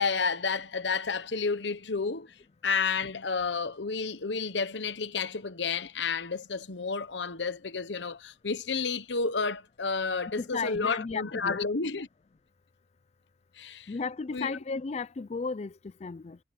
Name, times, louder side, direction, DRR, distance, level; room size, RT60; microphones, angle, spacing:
voice 1, 0.0-2.3 2.6-12.1 13.6-13.9 14.3-14.5, left 4 dB, 80° left, 1.1 m, -31 dB
voice 2, 10.4-11.6 13.9-15.7 16.0-16.4, left 4 dB, 35° left, 0.4 m, -34 dB
head